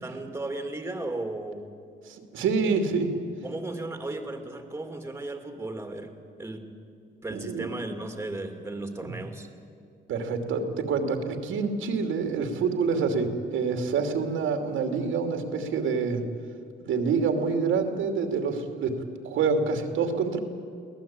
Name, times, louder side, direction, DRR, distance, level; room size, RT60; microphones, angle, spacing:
voice 1, 0.0-1.7 2.6-2.8 3.1-6.1 6.4-6.7 7.2-9.5, right 2 dB, 10° right, 5 dB, 2.4 m, -35 dB
voice 2, 2.1-3.1 7.3-7.7 9.0-9.1 10.1-16.2 16.9-19.0 19.2-20.4, right 5 dB, 80° right, 5 dB, 2.8 m, -27 dB
24.0 x 18.0 x 8.9 m, 2.4 s
cardioid pair, 130°, 20 cm